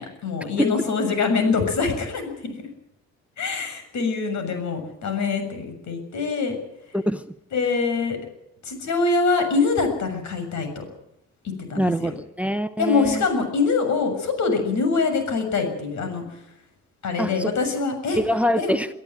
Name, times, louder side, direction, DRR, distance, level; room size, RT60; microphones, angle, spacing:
voice 1, 0.0-2.7 3.4-6.6 7.5-8.2 8.6-10.8 11.7-12.1 12.8-16.2 17.0-18.2 18.6-18.7, left 4 dB, 70° left, 7 dB, 7.1 m, -24 dB
voice 2, 11.8-13.3 17.2-17.5 18.2-18.9, equal, 5° right, 11 dB, 1.0 m, -24 dB
24.0 x 14.0 x 9.3 m, 0.81 s
cardioid pair, 90°, 30 cm